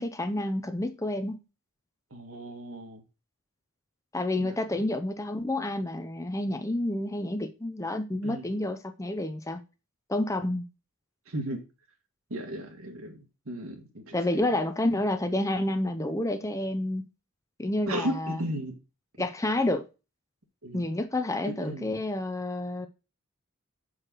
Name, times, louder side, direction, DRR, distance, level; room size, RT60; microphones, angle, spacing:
voice 1, 0.0-1.4 4.1-9.6 10.1-10.6 14.1-17.1 17.6-18.4 19.2-19.8 20.7-22.9, left 1 dB, 15° left, 0.5 m, -29 dB
voice 2, 2.1-3.0 4.4-4.8 8.2-8.4 11.3-11.6 12.3-14.4 17.9-18.7 20.6-20.9 21.5-21.9, right 1 dB, 70° right, 1.8 m, -36 dB
6.4 x 4.8 x 6.0 m
head